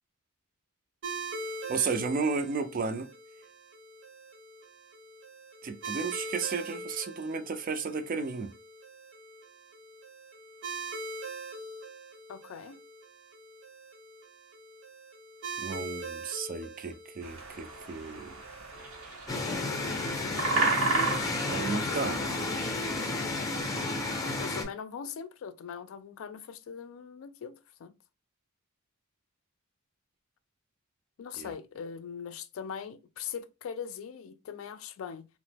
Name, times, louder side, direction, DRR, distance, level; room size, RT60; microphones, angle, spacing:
sound 1, 1.0-20.2, right 3 dB, 65° right, 0.8 m, -43 dB
voice 1, 1.7-3.1 5.6-8.5 15.6-18.3 21.5-22.2 31.4-31.5, right 4 dB, 40° right, 0.4 m, -33 dB
voice 2, 12.3-12.8 21.3-22.7 24.4-27.9 31.2-35.3, left 7 dB, 65° left, 0.3 m, -41 dB
sound 2, 17.2-22.5, right 3 dB, 80° right, 1.1 m, -33 dB
sound 3, 19.3-24.6, left 2 dB, 15° left, 0.5 m, -32 dB
2.9 x 2.0 x 3.3 m
head